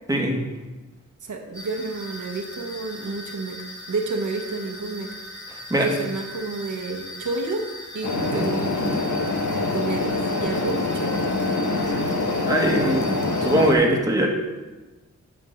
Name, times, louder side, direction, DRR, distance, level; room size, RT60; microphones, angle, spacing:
voice 1, 1.2-3.6 3.9-5.1 5.7-7.6 7.9-9.0 9.4-11.3, right 3 dB, 75° right, 2 dB, 1.1 m, -30 dB
sound 1, 1.5-13.7, left 1 dB, 15° left, 2.0 m, -39 dB
voice 2, 5.5-5.9 8.2-8.5 11.7-12.2 12.5-14.3, right 1 dB, 10° right, -1 dB, 1.3 m, -22 dB
sound 2, 8.0-13.7, left 3 dB, 70° left, 1.0 m, -25 dB
10.0 x 3.6 x 6.5 m, 1.2 s
wide cardioid pair, 130°, 30 cm